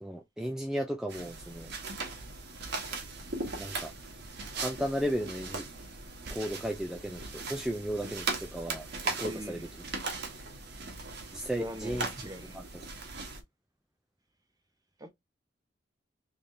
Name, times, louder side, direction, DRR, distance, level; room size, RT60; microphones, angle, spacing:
voice 1, 0.0-1.7 3.6-3.9 4.6-5.7 6.3-9.7 11.3-12.1 12.5-12.6, equal, 5° right, 0.4 m, -35 dB
sound 1, 1.1-13.4, right 3 dB, 65° right, 1.1 m, -39 dB
voice 2, 9.2-9.7 11.5-12.6 15.0-15.1, equal, 20° right, 0.8 m, -42 dB
3.5 x 3.4 x 2.6 m
head